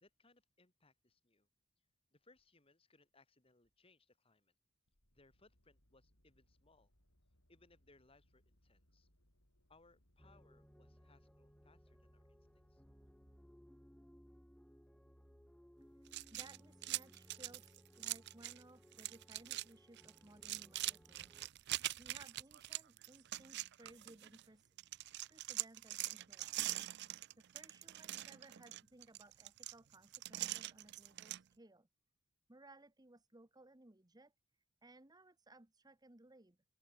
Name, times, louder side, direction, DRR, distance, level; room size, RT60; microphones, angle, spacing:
voice 1, 0.0-1.5 2.1-4.5 5.1-6.9 7.5-9.1 9.7-12.8, left 3 dB, 25° left, 2.7 m, -70 dB
sound 1, 4.9-13.4, equal, 80° left, 7.0 m, -75 dB
sound 2, 10.2-21.5, equal, 5° left, 1.4 m, -64 dB
sound 3, 16.1-18.6 18.9-19.7 20.0-24.4 24.8-31.4, right 15 dB, 55° right, 0.5 m, -43 dB
voice 2, 16.3-21.3 22.0-24.7 25.3-26.6 27.4-31.9 32.5-34.3 34.8-36.6, right 2 dB, 20° right, 1.2 m, -61 dB
open air
head